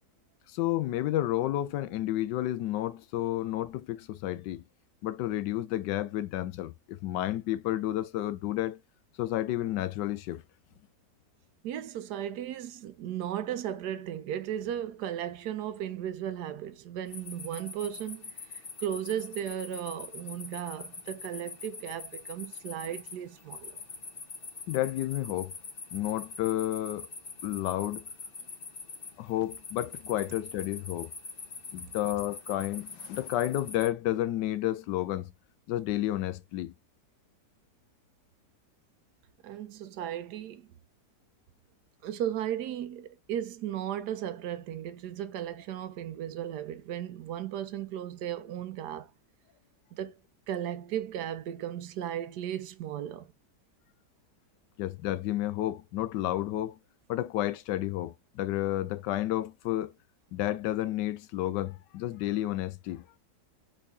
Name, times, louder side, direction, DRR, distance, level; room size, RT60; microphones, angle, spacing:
voice 1, 0.5-4.6 5.0-8.8 9.2-10.4 24.7-25.5 25.9-27.1 27.4-28.0 29.2-31.1 31.7-35.3 35.7-36.7 54.8-56.8 57.1-59.9 60.3-63.0, left 14 dB, 85° left, 1.2 m, -31 dB
voice 2, 11.6-18.3 18.8-23.8 39.4-40.7 42.0-49.1 49.9-50.2 50.5-53.3, right 10 dB, 75° right, 1.2 m, -36 dB
sound 1, 17.1-33.9, left 4 dB, 40° left, 1.0 m, -44 dB
4.1 x 3.7 x 3.4 m
omnidirectional pair, 1.8 m